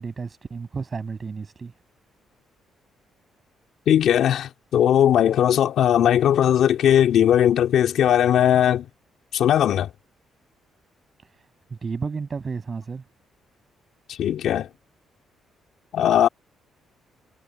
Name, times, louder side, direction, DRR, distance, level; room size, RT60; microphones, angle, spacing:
voice 1, 0.0-1.7 11.2-11.3 11.7-13.0, right 5 dB, 35° right, 6.7 m, -32 dB
voice 2, 3.9-8.8 9.3-9.9 14.1-14.7 15.9-16.3, left 10 dB, 75° left, 2.8 m, -19 dB
cardioid pair, 90°, 0 cm